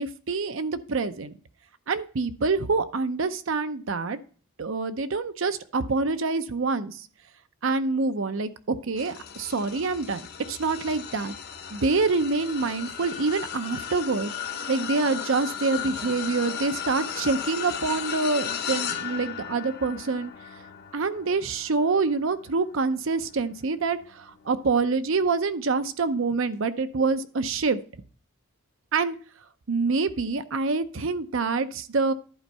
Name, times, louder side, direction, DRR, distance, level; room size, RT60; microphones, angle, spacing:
voice 1, 0.0-1.3 1.9-4.2 4.6-7.1 7.6-11.3 11.7-14.3 14.7-20.3 20.9-27.8 28.9-29.2 29.7-32.1, right 4 dB, 60° right, 11 dB, 0.6 m, -26 dB
sound 1, 9.0-24.5 25.0-25.2 26.5-26.6, left 8 dB, 45° left, 0.9 m, -36 dB
11.0 x 4.5 x 5.3 m, 0.42 s
head